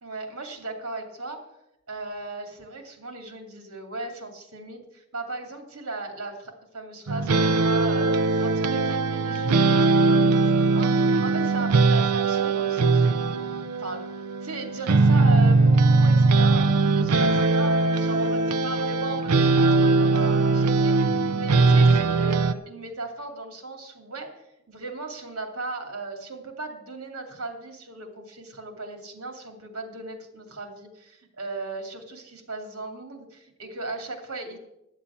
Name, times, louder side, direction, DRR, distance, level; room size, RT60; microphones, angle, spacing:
voice 1, 0.0-1.5 1.9-14.0 14.4-34.6, right 2 dB, 70° right, 4 dB, 2.6 m, -37 dB
sound 1, 7.1-22.5, right 3 dB, 90° right, 0.6 m, -20 dB
11.0 x 7.4 x 8.5 m, 0.87 s
head